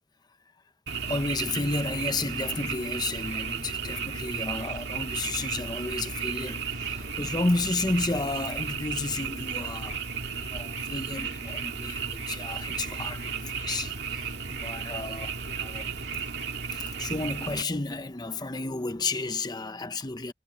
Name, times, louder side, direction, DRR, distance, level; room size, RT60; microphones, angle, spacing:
Frog, 0.9-17.6, right 6 dB, 65° right, 2.4 m, -34 dB
voice 1, 1.0-10.0 10.4-15.9 16.7-20.3, left 3 dB, 25° left, 0.9 m, -32 dB
head